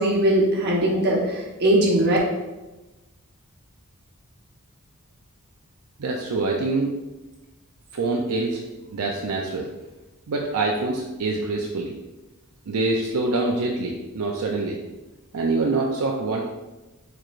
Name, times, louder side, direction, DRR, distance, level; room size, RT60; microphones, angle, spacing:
voice 1, 0.0-2.2, right 1 dB, 45° right, -3 dB, 1.1 m, -20 dB
voice 2, 6.0-6.9 7.9-8.6 8.9-9.7 10.3-11.9 12.7-14.8 15.3-16.4, right 3 dB, 75° right, 0 dB, 0.5 m, -25 dB
4.8 x 4.3 x 2.5 m, 1.1 s
head